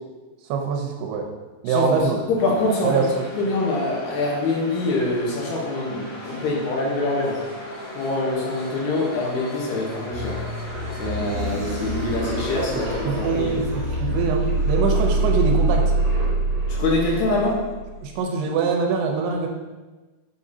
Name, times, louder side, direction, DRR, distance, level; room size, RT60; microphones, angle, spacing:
voice 1, 0.5-1.3 1.6-2.2 2.8-3.3 13.1-15.9 18.0-19.5, right 5 dB, 80° right, 2 dB, 2.5 m, -23 dB
voice 2, 2.3-3.1 3.3-7.4 8.0-10.4 11.0-13.6 16.7-17.6, left 2 dB, 75° left, -3 dB, 3.0 m, -24 dB
sound 1, 2.4-14.7, left 1 dB, 55° left, 0.9 m, -38 dB
sound 2, 10.1-18.1, right 2 dB, 55° right, 2.5 m, -25 dB
7.2 x 4.9 x 2.7 m, 1.2 s
omnidirectional pair, 4.9 m